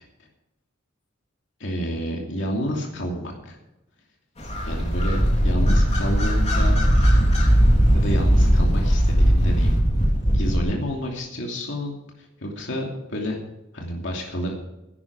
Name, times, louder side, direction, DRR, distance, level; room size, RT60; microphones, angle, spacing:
voice 1, 1.6-3.6 4.6-6.8 7.9-9.7 10.3-13.4 13.7-14.5, equal, 65° left, 0 dB, 2.8 m, -29 dB
sound 1, 4.4-10.6, equal, 35° left, 3.6 m, -18 dB
16.0 x 11.0 x 4.8 m, 0.93 s
head